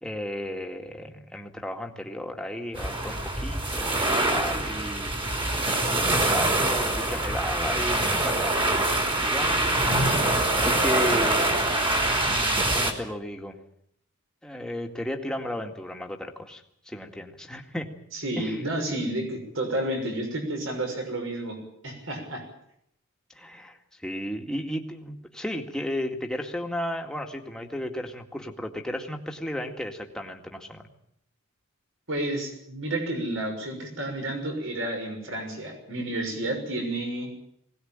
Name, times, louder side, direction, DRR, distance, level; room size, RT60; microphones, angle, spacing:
voice 1, 0.0-5.2 5.9-8.5 9.2-9.6 10.6-11.8 12.2-13.6 14.4-17.9 18.4-18.6 23.3-23.8 24.0-30.9, equal, 5° left, 2 dB, 2.1 m, -34 dB
sound 1, 2.7-12.9, right 1 dB, 25° right, 3.4 m, -24 dB
voice 2, 18.1-21.6 21.8-22.4 32.1-37.3, right 1 dB, 60° right, 3 dB, 6.3 m, -31 dB
21.0 x 18.5 x 8.9 m, 0.74 s
head